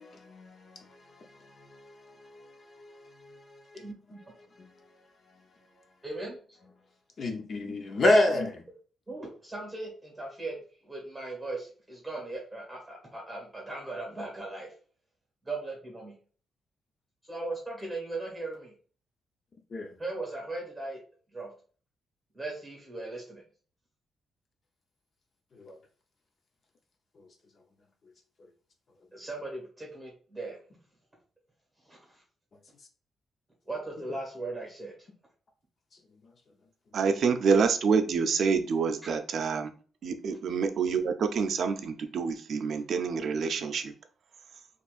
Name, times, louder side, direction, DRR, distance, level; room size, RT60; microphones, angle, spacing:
voice 1, 0.0-3.6 4.6-4.7 7.2-8.5 19.7-19.9 25.5-25.8 27.2-27.3, left 1 dB, 45° left, 0.6 m, -30 dB
voice 2, 3.7-4.2 6.0-6.4 9.1-10.6 10.8-14.7 15.4-16.2 17.3-18.7 20.0-21.0 21.3-21.5 22.3-23.4 29.1-30.6 31.8-32.2 33.6-35.1, right 2 dB, 10° right, 1.6 m, -38 dB
voice 3, 36.9-39.7 40.0-43.9, right 5 dB, 60° right, 0.5 m, -27 dB
4.3 x 3.0 x 2.4 m
cardioid pair, 140°, 0 cm